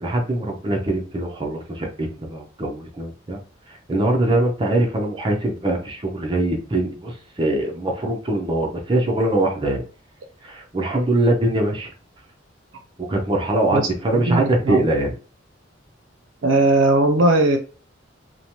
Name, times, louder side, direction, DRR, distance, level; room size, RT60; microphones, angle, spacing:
voice 1, 0.0-3.4 3.9-9.8 10.4-11.9 13.0-15.1, right 1 dB, 25° right, 0.6 m, -22 dB
voice 2, 14.1-14.9 16.4-17.6, right 2 dB, 80° right, 0.5 m, -18 dB
3.1 x 2.1 x 2.8 m
head